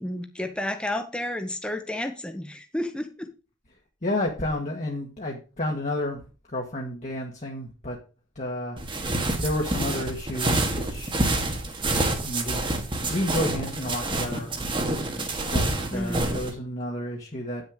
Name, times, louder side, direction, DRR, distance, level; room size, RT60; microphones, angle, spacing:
voice 1, 0.0-3.3 15.9-16.3, left 1 dB, 5° left, 6 dB, 1.2 m, -31 dB
voice 2, 4.0-6.2 6.5-8.0 8.3-8.8 9.4-11.3 12.2-12.7 13.1-14.6 15.4-15.6 15.9-17.6, left 1 dB, 40° left, 0 dB, 1.7 m, -31 dB
sound 1, 8.8-16.5, right 2 dB, 25° right, 1.7 m, -27 dB
9.6 x 6.6 x 5.0 m, 0.33 s
head